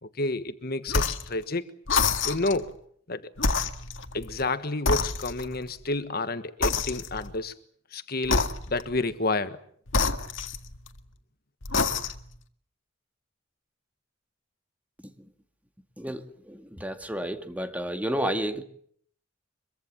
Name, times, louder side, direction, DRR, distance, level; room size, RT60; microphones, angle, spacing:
voice 1, 0.0-1.6 2.2-2.7 3.1-3.3 4.1-7.5 7.9-9.6, left 2 dB, 55° left, 1.4 m, -30 dB
sound 1, 0.9-1.3 1.9-2.6 3.4-4.5 4.9-5.6 6.6-7.4 8.2-9.0 9.9-11.0 11.6-12.3, left 4 dB, 85° left, 1.9 m, -27 dB
voice 2, 16.0-18.6, right 1 dB, 10° right, 2.0 m, -31 dB
25.0 x 23.5 x 7.4 m
head